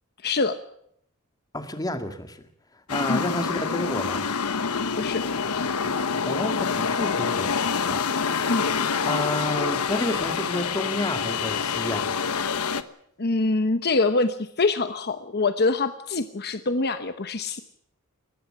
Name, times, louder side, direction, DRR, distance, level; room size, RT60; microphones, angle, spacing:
voice 1, 0.2-0.6 3.1-3.2 5.0-5.2 8.5-8.7 13.2-17.6, left 3 dB, 50° left, 10 dB, 1.0 m, -24 dB
voice 2, 1.5-2.4 2.9-4.3 6.3-8.5 9.0-12.1, left 1 dB, 15° left, 7 dB, 2.1 m, -30 dB
sound 1, 2.9-12.8, left 5 dB, 90° left, 1.1 m, -26 dB
19.5 x 14.5 x 10.0 m, 0.72 s
head